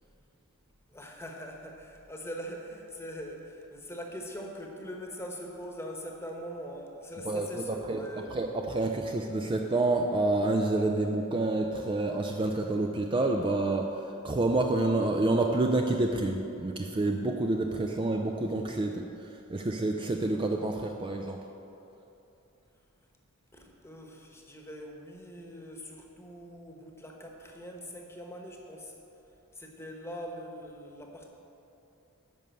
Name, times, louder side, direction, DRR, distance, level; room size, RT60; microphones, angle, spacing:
voice 1, 0.9-8.3 23.5-28.9 29.5-31.3, equal, 10° left, 1 dB, 1.2 m, -42 dB
voice 2, 7.2-21.4, right 2 dB, 25° right, 3 dB, 0.4 m, -28 dB
10.5 x 5.4 x 7.7 m, 2.8 s
head